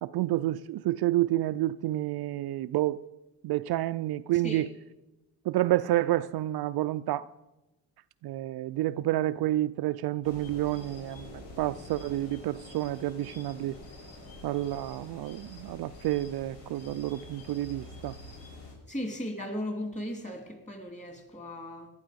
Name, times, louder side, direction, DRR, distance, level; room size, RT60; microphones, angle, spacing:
voice 1, 0.0-3.0 3.4-4.7 5.5-7.3 8.2-13.8 14.4-18.1, right 15 dB, 55° right, 0.5 m, -29 dB
sound 1, 10.2-18.7, left 1 dB, 85° left, 5.0 m, -47 dB
voice 2, 18.9-21.9, left 1 dB, 15° left, 3.0 m, -36 dB
18.0 x 12.5 x 5.2 m
cardioid pair, 110°, 45 cm